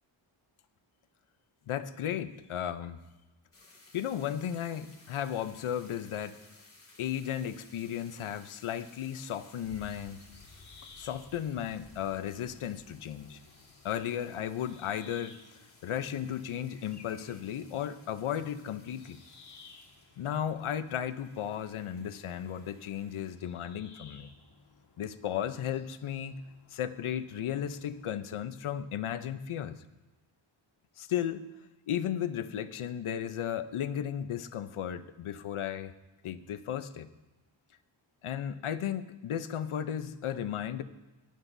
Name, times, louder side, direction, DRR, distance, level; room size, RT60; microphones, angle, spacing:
voice 1, 1.7-3.0 3.9-6.4 7.0-10.2 11.0-13.4 13.8-15.4 15.8-19.2 20.2-24.3 25.0-26.4 26.7-29.8 31.0-31.4 31.9-35.9 36.2-37.1 38.2-40.8, left 9 dB, 80° left, 12 dB, 0.8 m, -35 dB
sound 1, 3.5-23.3, left 2 dB, 25° left, 2.2 m, -60 dB
sound 2, 9.6-28.1, left 4 dB, 55° left, 1.7 m, -57 dB
18.5 x 12.0 x 2.7 m, 1.1 s
wide cardioid pair, 135°, 49 cm